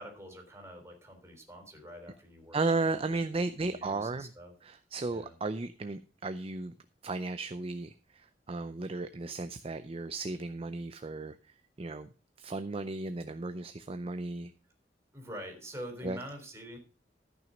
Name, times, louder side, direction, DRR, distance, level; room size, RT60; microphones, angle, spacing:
voice 1, 0.0-2.6 2.8-3.2 3.6-4.5 5.1-5.4 15.1-16.8, equal, 15° right, 3 dB, 3.6 m, -46 dB
voice 2, 2.5-4.3 4.6-6.7 7.0-11.4 11.8-12.1 12.4-14.5 16.0-16.2, right 3 dB, 35° right, 11 dB, 0.5 m, -34 dB
14.0 x 6.2 x 5.1 m, 0.35 s
head